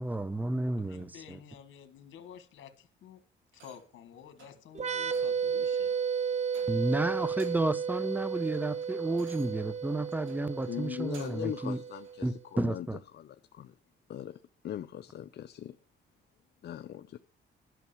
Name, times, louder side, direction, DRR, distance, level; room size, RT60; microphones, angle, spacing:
voice 1, 0.0-1.4 6.7-11.8 12.2-13.0, right 2 dB, 10° right, 0.6 m, -32 dB
voice 2, 0.8-3.2 3.5-5.9, left 8 dB, 80° left, 1.5 m, -51 dB
sound 1, 3.5-4.0 4.4-4.6 5.0-5.4 5.8-6.0 6.5-7.0 7.3-7.8 8.2-11.5 12.0-12.2, right 4 dB, 80° right, 2.7 m, -57 dB
sound 2, 4.7-12.3, right 7 dB, 35° right, 1.0 m, -33 dB
voice 3, 10.7-12.9 13.1-13.7 14.1-14.4 14.6-15.8 16.6-17.2, left 11 dB, 55° left, 0.6 m, -40 dB
11.0 x 5.8 x 7.0 m
cardioid pair, 90°, 20 cm